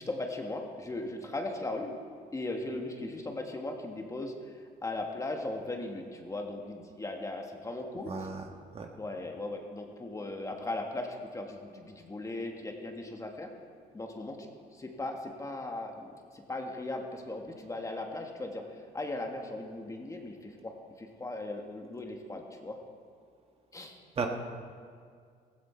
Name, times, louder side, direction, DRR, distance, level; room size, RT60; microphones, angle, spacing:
voice 1, 0.0-1.9 2.3-8.1 9.0-13.5 13.9-22.8 23.7-24.0, left 2 dB, 20° left, 3 dB, 1.6 m, -38 dB
voice 2, 8.1-8.5 8.7-8.9 24.2-24.3, right 5 dB, 35° right, 3 dB, 1.5 m, -34 dB
15.5 x 15.5 x 4.5 m, 2.1 s
cardioid pair, 110°, 17 cm